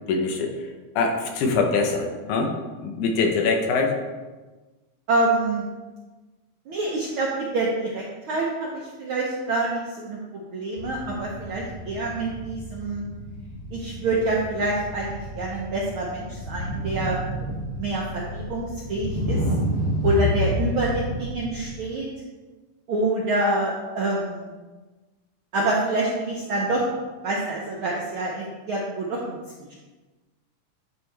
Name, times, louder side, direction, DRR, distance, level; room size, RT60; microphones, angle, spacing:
voice 1, 0.1-0.7 1.0-4.0, left 4 dB, 85° left, 3 dB, 2.4 m, -24 dB
voice 2, 5.1-5.6 6.7-13.1 13.7-17.2 17.8-19.4 20.0-22.1 22.9-24.5 25.5-26.9 27.2-29.7, right 2 dB, 75° right, -3 dB, 1.2 m, -26 dB
sound 1, 10.8-21.7, equal, 55° left, 1.4 m, -30 dB
9.8 x 4.4 x 3.3 m, 1.2 s
omnidirectional pair, 3.4 m